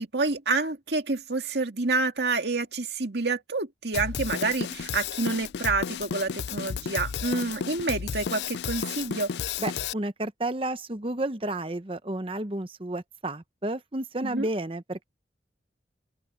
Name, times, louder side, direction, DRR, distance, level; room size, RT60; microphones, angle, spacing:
voice 1, 0.0-9.3 14.2-14.5, right 3 dB, 70° right, 2.0 m, -28 dB
Drum kit, 3.9-9.9, left 7 dB, 70° left, 0.4 m, -33 dB
voice 2, 9.6-15.0, right 1 dB, 30° right, 0.9 m, -31 dB
open air
head